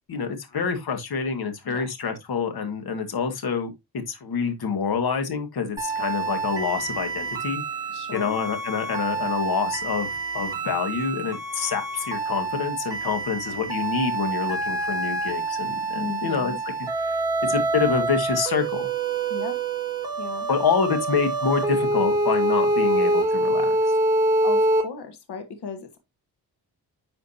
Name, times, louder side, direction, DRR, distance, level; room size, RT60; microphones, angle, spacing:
voice 1, 0.1-3.7 4.1-7.6 8.1-16.5 17.0-17.2 17.5-18.9 20.5-23.8, left 6 dB, 70° left, 1.9 m, -27 dB
sound 1, 5.8-24.8, right 2 dB, 10° right, 3.6 m, -26 dB
voice 2, 7.9-8.4 9.2-9.3 15.9-16.6 19.3-19.6 20.2-20.5 24.4-26.0, left 5 dB, 85° left, 1.7 m, -36 dB
10.5 x 5.1 x 2.8 m
wide cardioid pair, 115°, 39 cm